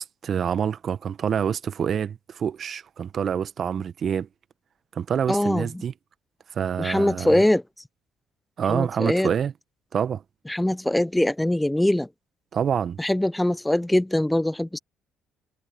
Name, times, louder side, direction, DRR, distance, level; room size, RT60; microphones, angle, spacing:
voice 1, 0.0-4.3 4.9-5.9 6.5-7.4 8.6-9.5 9.9-10.2 12.5-13.0, right 8 dB, 50° right, 1.4 m, -26 dB
voice 2, 5.3-5.7 6.8-7.6 8.7-9.3 10.5-12.1 13.0-14.8, left 1 dB, 10° left, 0.8 m, -22 dB
hypercardioid pair, 50°, 0 cm